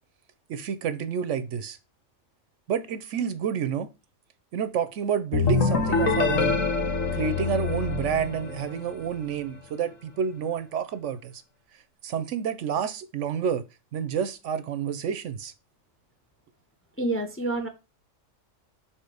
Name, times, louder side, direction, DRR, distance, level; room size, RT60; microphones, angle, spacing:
voice 1, 0.5-1.8 2.7-3.9 4.5-6.6 7.1-11.3 12.0-13.6 13.9-15.5, right 7 dB, 70° right, 0.9 m, -29 dB
sound 1, 5.3-9.0, left 4 dB, 75° left, 1.6 m, -25 dB
voice 2, 17.0-17.7, right 2 dB, 15° left, 0.6 m, -28 dB
5.6 x 4.4 x 4.8 m
omnidirectional pair, 1.4 m